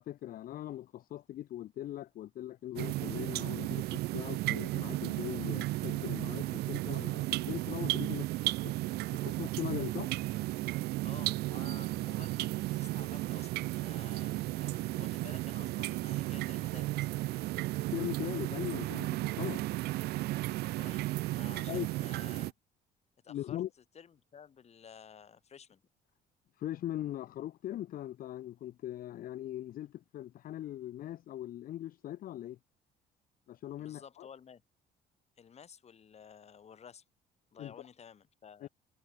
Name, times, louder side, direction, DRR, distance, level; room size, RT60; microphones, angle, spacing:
voice 1, 0.0-8.7 9.1-10.1 17.9-19.6 21.7-21.9 23.3-23.7 26.6-32.6 33.5-34.3 37.6-37.7 38.6-38.7, left 12 dB, 60° left, 0.9 m, -40 dB
sound 1, 2.8-22.5, right 18 dB, 70° right, 0.5 m, -34 dB
voice 2, 11.0-16.9 20.8-22.5 23.2-25.8 33.8-34.6 35.4-37.0 37.5-38.7, left 7 dB, 40° left, 3.1 m, -53 dB
cardioid pair, 110°, 17 cm